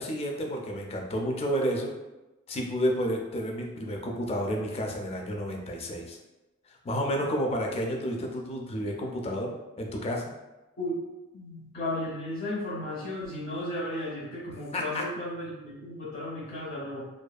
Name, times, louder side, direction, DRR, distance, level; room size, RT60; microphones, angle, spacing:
voice 1, 0.0-1.9 2.5-6.2 6.8-10.2 14.7-15.0, equal, 30° left, 1 dB, 0.3 m, -30 dB
voice 2, 11.3-17.1, left 1 dB, 45° left, -7 dB, 0.7 m, -34 dB
2.6 x 2.3 x 2.2 m, 1.1 s
head